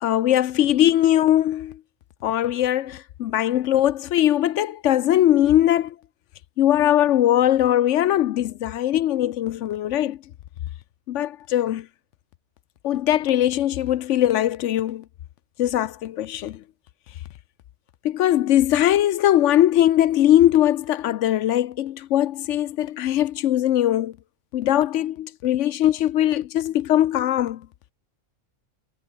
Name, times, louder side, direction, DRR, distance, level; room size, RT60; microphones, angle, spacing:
voice 1, 0.0-1.8 2.2-5.9 6.6-10.2 11.1-11.9 12.8-15.0 15.6-16.6 18.0-24.1 24.5-27.6, left 12 dB, 75° left, 0.9 m, -20 dB
omnidirectional pair, 1.3 m